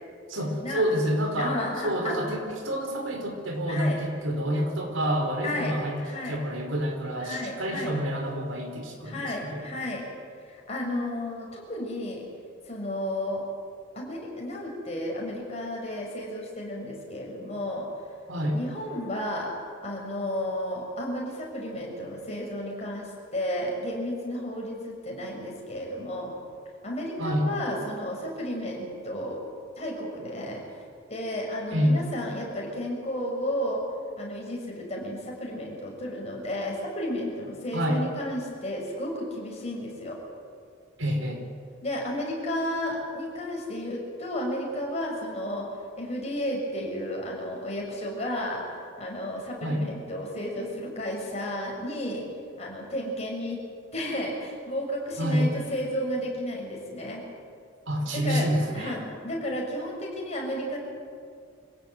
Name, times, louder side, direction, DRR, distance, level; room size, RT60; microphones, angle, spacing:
voice 1, 0.3-1.6 1.8-9.7 18.3-18.6 27.2-27.5 31.7-31.9 37.7-38.0 41.0-41.4 49.6-49.8 55.2-55.5 57.9-59.0, equal, 85° right, 3 dB, 4.8 m, -28 dB
voice 2, 1.3-2.2 3.7-4.0 5.4-6.4 7.2-7.9 9.0-10.1 10.5-12.2 12.6-13.4 13.9-17.9 18.5-19.5 19.8-26.3 26.8-29.4 29.8-30.6 31.1-33.8 34.2-40.2 41.8-45.7 46.0-48.6 49.0-52.2 52.6-53.6 53.9-57.2 58.1-58.5 58.7-59.0 59.2-60.8, left 1 dB, 35° left, -1 dB, 6.6 m, -32 dB
25.0 x 16.5 x 9.3 m, 2.2 s
head